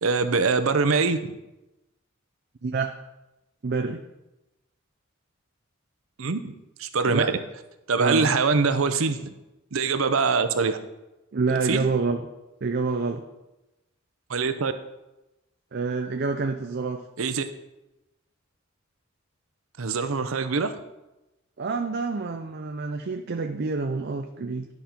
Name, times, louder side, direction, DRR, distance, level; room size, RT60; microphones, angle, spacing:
voice 1, 0.0-1.4 6.2-6.5 6.8-7.4 7.9-9.2 9.7-10.8 11.7-11.9 14.3-14.7 17.2-17.4 19.8-20.7, right 4 dB, 85° right, 10 dB, 0.7 m, -23 dB
voice 2, 2.6-2.9 3.6-4.0 7.1-7.3 8.0-8.4 11.3-12.2 12.6-13.2 15.7-17.0 21.6-24.7, right 4 dB, 50° right, 4 dB, 0.6 m, -27 dB
11.5 x 5.4 x 4.4 m, 0.98 s
head